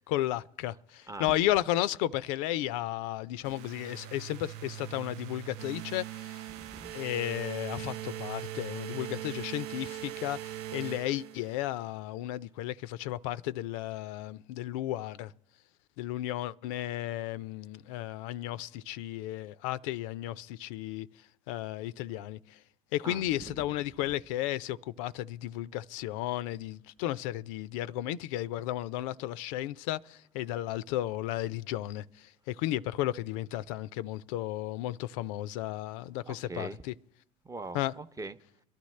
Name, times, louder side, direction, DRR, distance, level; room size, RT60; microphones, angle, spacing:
voice 1, 0.1-6.4 6.9-15.3 16.0-21.1 21.5-22.6 22.9-36.9 37.7-37.9, left 14 dB, 80° left, 0.4 m, -34 dB
sound 1, 3.4-11.8, right 13 dB, 70° right, 0.6 m, -41 dB
voice 2, 6.5-6.9 23.0-23.7 36.3-36.8 37.4-38.4, right 3 dB, 20° right, 0.6 m, -42 dB
23.0 x 11.5 x 3.2 m
supercardioid pair, 85°, 16 cm